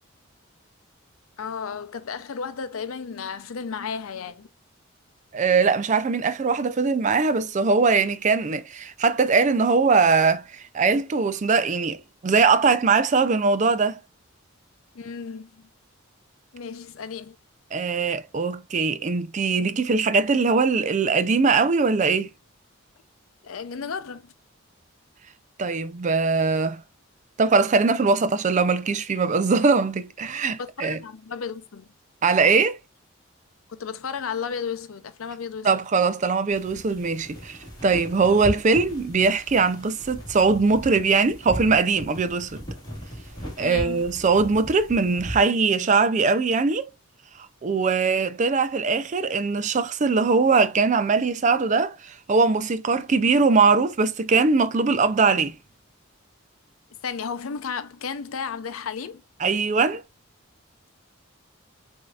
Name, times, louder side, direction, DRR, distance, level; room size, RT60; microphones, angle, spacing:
voice 1, 1.4-4.5 14.9-15.6 16.5-17.4 23.4-24.3 30.5-31.9 33.7-35.7 43.6-44.1 57.0-59.2, left 6 dB, 85° left, 0.5 m, -33 dB
voice 2, 5.3-14.0 17.7-22.3 25.6-26.8 27.4-31.0 32.2-32.8 35.6-42.6 43.6-46.9 47.6-55.6 59.4-60.0, right 4 dB, 35° right, 0.4 m, -21 dB
sound 1, 36.5-45.4, equal, 20° left, 2.0 m, -37 dB
6.3 x 2.7 x 2.3 m
head